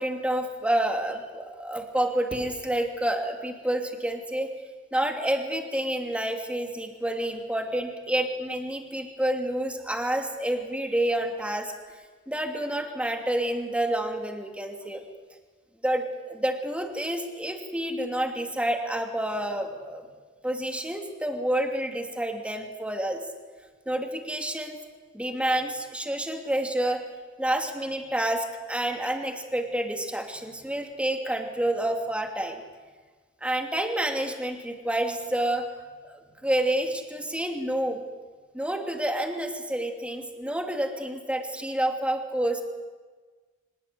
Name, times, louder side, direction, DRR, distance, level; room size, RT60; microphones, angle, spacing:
voice 1, 0.0-4.5 4.9-12.0 12.3-15.0 15.8-20.0 20.4-23.2 23.9-24.8 25.1-27.0 27.4-32.6 33.4-35.7 36.0-38.0 38.5-42.6, right 1 dB, 5° right, 4 dB, 2.7 m, -29 dB
24.5 x 21.0 x 8.6 m, 1.4 s
head